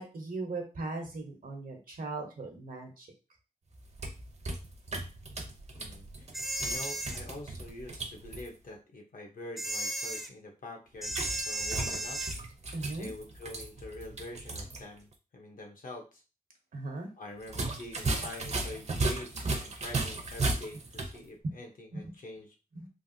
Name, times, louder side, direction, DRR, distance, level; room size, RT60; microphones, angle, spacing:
voice 1, 0.0-3.1 12.7-13.1 16.7-17.1 21.4-21.6 21.9-22.1 22.7-22.9, right 2 dB, 80° right, 2 dB, 0.9 m, -38 dB
sound 1, 3.7-8.5 11.1-14.8 15.1-15.2 17.4-21.2, right 2 dB, 50° right, 0.6 m, -36 dB
voice 2, 5.8-6.3 6.6-11.1 11.5-12.2 13.0-16.2 17.2-22.5, left 2 dB, 75° left, 1 dB, 0.8 m, -45 dB
sound 2, 6.3-7.2 9.6-10.3 11.0-12.4, right 1 dB, ahead, 0.4 m, -34 dB
3.3 x 2.4 x 2.6 m, 0.31 s
wide cardioid pair, 120°, 14 cm